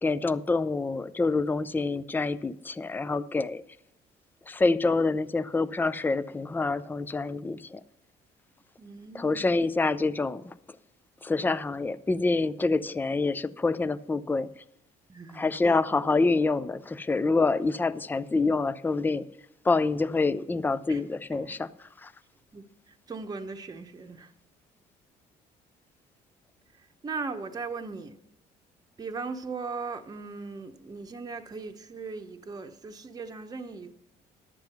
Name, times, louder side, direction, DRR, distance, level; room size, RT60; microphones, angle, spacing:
voice 1, 0.0-3.6 4.5-7.8 9.1-10.5 11.2-14.5 15.3-19.3 19.6-21.7 22.0-22.1, left 3 dB, 10° left, 0.4 m, -26 dB
voice 2, 8.8-9.6 15.1-15.8 20.9-21.0 21.4-21.6 22.5-24.3 26.7-28.2 29.0-33.9, right 4 dB, 20° right, 0.9 m, -38 dB
11.5 x 7.4 x 5.9 m
cardioid pair, 110°, 17 cm